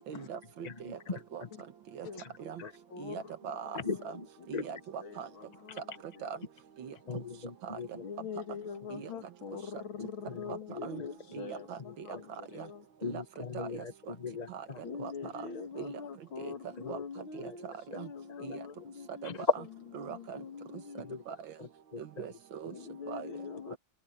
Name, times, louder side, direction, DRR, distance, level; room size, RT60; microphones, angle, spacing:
voice 1, 0.1-0.7 1.3-1.4 2.0-2.1 2.5-2.6 3.0-4.2 4.5-5.3 6.2-6.4 6.8-6.9 7.6-7.7 8.9-9.1 10.5-10.6 10.8-11.0 11.3-11.8 12.6-12.7 13.0-13.2 13.5-13.8 14.5-14.6 15.0-15.1 15.8-15.9 16.4-16.5 16.9-17.0 17.4-17.5 17.9-18.1 18.4-18.6 20.0-20.4 21.3-21.4 22.0-22.7 23.1-23.3, right 7 dB, 70° right, 1.9 m, -41 dB
voice 2, 0.6-1.5 2.2-2.3 2.6-2.7 3.7-4.3 4.5-4.6 7.1-8.0 10.0-11.1 11.8-12.2 13.0-14.8 16.8-17.0 17.4-17.6 18.4-18.6 19.2-19.5 21.0-21.2 21.6-22.3 23.7-23.8, left 4 dB, 25° left, 1.1 m, -41 dB
voice 3, 2.6-3.3 3.7-4.1 4.4-6.4 7.0-7.2 8.0-12.9 14.8-19.4 20.0-21.1 22.7-23.8, left 6 dB, 80° left, 2.7 m, -44 dB
omnidirectional pair, 2.2 m